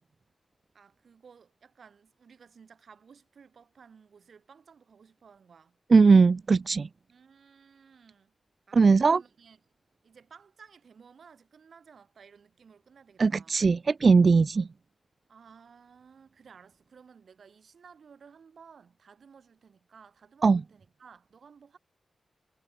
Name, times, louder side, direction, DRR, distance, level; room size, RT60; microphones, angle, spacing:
voice 1, 0.7-5.8 7.1-8.3 8.7-9.6 10.0-13.6 15.3-21.8, right 6 dB, 60° right, 7.7 m, -55 dB
voice 2, 5.9-6.9 8.7-9.2 13.2-14.7 20.4-20.6, right 4 dB, 40° right, 0.4 m, -19 dB
wide cardioid pair, 160°, 0 cm